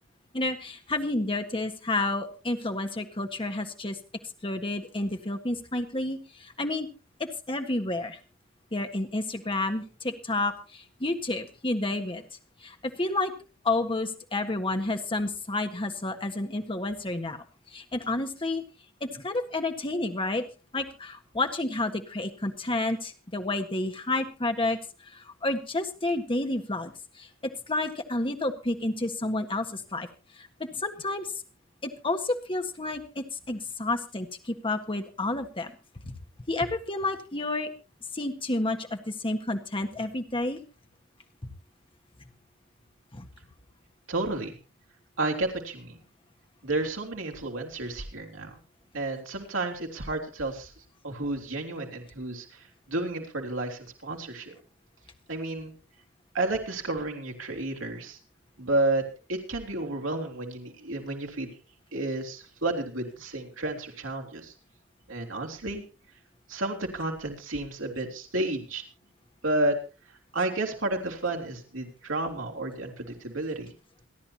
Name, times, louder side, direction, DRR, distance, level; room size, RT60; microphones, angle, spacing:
voice 1, 0.3-4.0 4.4-6.9 7.2-8.2 8.7-12.2 12.6-13.3 13.6-17.4 17.7-18.6 19.0-20.4 20.7-24.8 25.1-26.9 27.2-30.1 30.6-31.3 31.8-35.7 36.5-37.7 38.1-40.6 41.4-41.5 43.1-43.3, left 2 dB, 25° left, 5 dB, 1.6 m, -30 dB
voice 2, 44.1-44.6 45.2-46.0 46.6-48.6 48.9-50.7 51.0-54.5 55.3-55.7 56.3-58.2 58.6-59.0 59.3-61.5 61.9-64.5 65.1-65.8 66.5-68.8 69.4-69.8 70.3-73.7, right 2 dB, 70° right, 2 dB, 3.2 m, -31 dB
28.0 x 10.5 x 2.9 m, 0.31 s
head